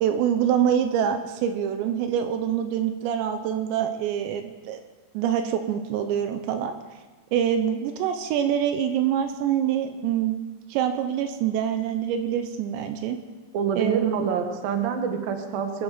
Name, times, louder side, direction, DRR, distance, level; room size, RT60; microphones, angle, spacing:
voice 1, 0.0-4.8 5.1-6.8 7.3-10.4 10.7-13.2 13.8-14.3, right 9 dB, 85° right, 7 dB, 3.0 m, -25 dB
voice 2, 13.5-15.8, right 7 dB, 65° right, 5 dB, 2.9 m, -26 dB
24.5 x 11.0 x 5.0 m, 1.4 s
omnidirectional pair, 5.0 m